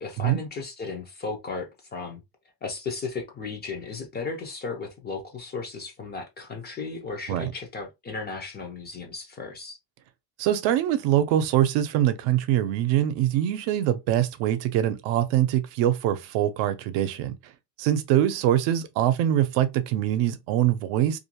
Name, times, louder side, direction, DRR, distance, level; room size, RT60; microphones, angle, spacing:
voice 1, 0.0-2.2 2.6-9.8, left 4 dB, 25° left, 0.4 m, -35 dB
voice 2, 10.4-17.4 17.8-21.2, right 11 dB, 80° right, 0.6 m, -23 dB
2.5 x 2.2 x 2.8 m
cardioid pair, 145°, 43 cm